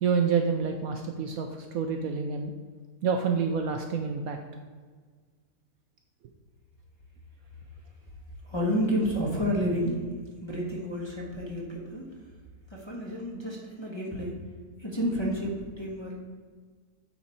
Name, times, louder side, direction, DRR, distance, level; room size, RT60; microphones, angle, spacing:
voice 1, 0.0-2.5 3.0-4.4, right 5 dB, 70° right, 4 dB, 0.9 m, -28 dB
voice 2, 8.4-10.1 10.4-12.0 12.7-14.3 14.8-16.3, equal, 20° left, -5 dB, 1.1 m, -30 dB
8.7 x 4.3 x 4.1 m, 1.5 s
omnidirectional pair, 1.8 m